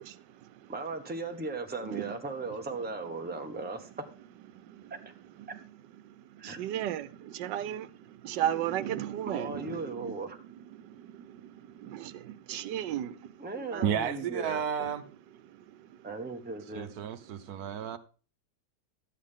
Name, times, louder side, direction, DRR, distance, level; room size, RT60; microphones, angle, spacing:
voice 1, 0.7-4.0 6.4-6.6 9.3-10.4 13.4-14.9 16.0-16.9, right 3 dB, 5° right, 1.0 m, -37 dB
voice 2, 6.0-10.2 10.7-13.3 13.7-13.9, right 11 dB, 85° right, 1.3 m, -35 dB
voice 3, 13.8-15.0 16.7-18.0, right 8 dB, 65° right, 1.2 m, -32 dB
12.0 x 8.4 x 3.6 m
omnidirectional pair, 1.8 m